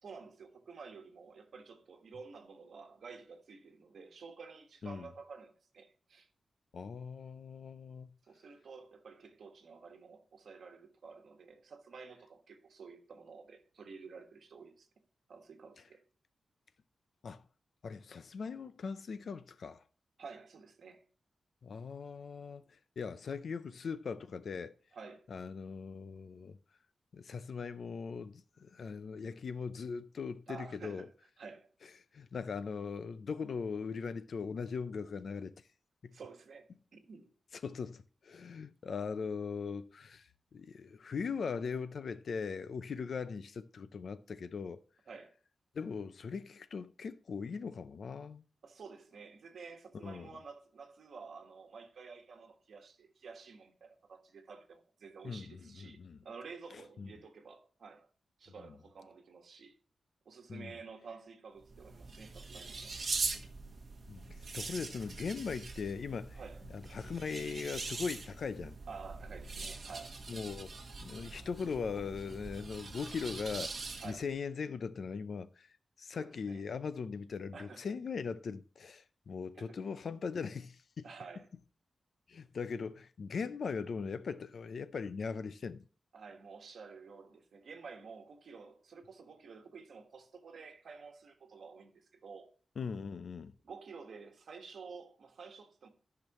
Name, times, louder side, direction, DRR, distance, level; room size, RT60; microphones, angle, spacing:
voice 1, 0.0-6.3 8.3-14.9 15.3-16.0 20.2-21.0 24.9-25.3 30.5-31.1 31.4-31.7 36.1-37.3 45.1-45.3 48.6-58.1 58.4-59.8 60.2-63.0 66.3-66.6 68.9-70.2 74.0-74.2 76.2-76.6 77.5-77.8 79.5-79.8 81.0-81.5 86.1-92.5 93.6-95.9, right 5 dB, 70° right, 1.5 m, -51 dB
voice 2, 6.7-8.1 17.2-17.4 17.8-19.8 21.6-24.7 25.3-26.6 27.1-31.1 32.1-35.5 36.0-36.2 37.6-44.8 45.7-48.4 50.0-50.3 55.2-56.2 56.7-57.1 60.5-60.7 63.1-63.2 64.1-66.4 66.7-68.8 70.3-75.7 76.0-81.0 82.3-85.8 92.8-93.5, left 5 dB, 60° left, 0.5 m, -40 dB
sound 1, 61.6-74.3, right 3 dB, 40° right, 1.4 m, -42 dB
14.0 x 5.9 x 3.0 m
wide cardioid pair, 170°, 0 cm